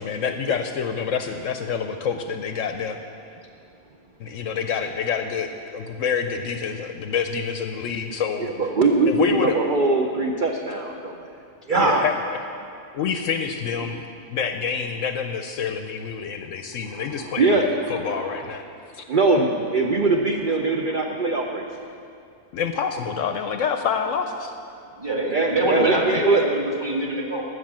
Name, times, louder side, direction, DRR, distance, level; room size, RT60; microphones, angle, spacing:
voice 1, 0.0-3.0 4.2-8.5 9.1-9.6 11.8-12.1 12.9-18.6 18.9-19.0 22.5-24.5, left 6 dB, 65° left, 7 dB, 0.9 m, -27 dB
voice 2, 8.4-11.3 11.7-12.1 17.1-18.4 19.1-21.8 25.3-26.4, right 3 dB, 50° right, 2 dB, 0.6 m, -22 dB
voice 3, 25.0-27.4, right 1 dB, 15° right, -2 dB, 1.7 m, -24 dB
13.5 x 6.5 x 7.4 m, 2.5 s
omnidirectional pair, 1.5 m